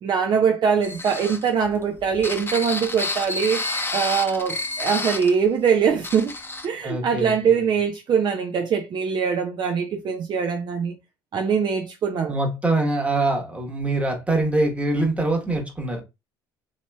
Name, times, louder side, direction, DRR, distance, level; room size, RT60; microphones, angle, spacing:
voice 1, 0.0-3.6 3.9-6.3 6.6-10.9 11.3-12.3, right 6 dB, 45° right, 0.5 m, -22 dB
sound 1, 0.8-5.3 5.7-5.8 6.0-6.7, left 2 dB, 20° left, 0.7 m, -29 dB
voice 2, 6.8-7.7 12.2-16.0, right 2 dB, 10° right, 1.1 m, -24 dB
2.9 x 2.9 x 2.2 m
hypercardioid pair, 65°, 11 cm